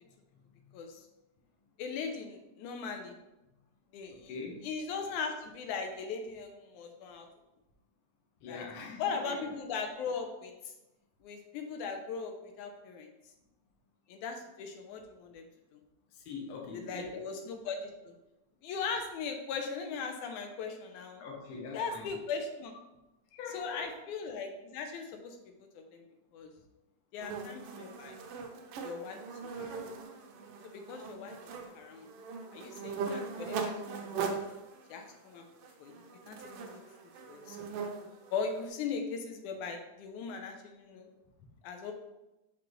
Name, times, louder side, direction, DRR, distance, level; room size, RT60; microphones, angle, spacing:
voice 1, 1.8-3.2 3.9-4.3 4.6-7.3 8.5-8.7 9.0-10.7 11.2-13.1 14.1-15.5 15.7-15.8 16.7-18.1 18.6-21.2 21.7-22.8 23.5-25.4 25.7-26.1 26.3-26.5 27.1-28.2 28.8-29.8 30.6-32.1 32.5-34.2 34.9-35.4 35.8-35.9 36.3-36.8 37.3-37.7 38.3-41.1 41.6-41.9, left 5 dB, 85° left, 4 dB, 2.1 m, -39 dB
voice 2, 4.3-4.6 8.4-9.5 16.1-17.1 21.2-22.0 23.3-24.0, left 4 dB, 60° left, 0 dB, 1.5 m, -43 dB
sound 1, 27.2-38.7, right 5 dB, 90° right, 1.2 m, -40 dB
6.0 x 5.2 x 3.1 m, 0.95 s
omnidirectional pair, 3.4 m